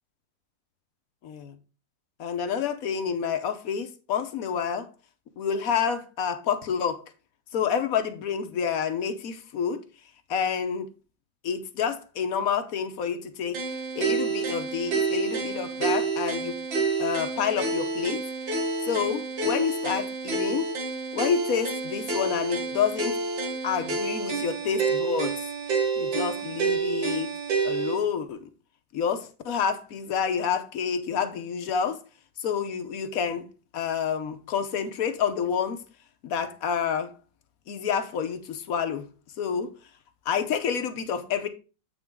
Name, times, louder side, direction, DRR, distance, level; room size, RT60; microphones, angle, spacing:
voice 1, 1.2-1.5 2.2-4.9 5.4-7.0 7.5-9.8 10.3-10.9 11.4-13.6 13.9-16.5 17.0-18.2 18.9-20.7 21.1-23.2 23.6-25.4 26.0-27.3 27.6-28.5 28.9-32.0 32.4-33.5 33.7-35.8 36.2-37.1 37.7-39.1 39.4-39.7 40.3-41.5, left 7 dB, 60° left, 1.1 m, -28 dB
sound 1, 13.5-28.0, right 3 dB, 90° right, 2.1 m, -29 dB
8.0 x 5.4 x 3.5 m
omnidirectional pair, 2.0 m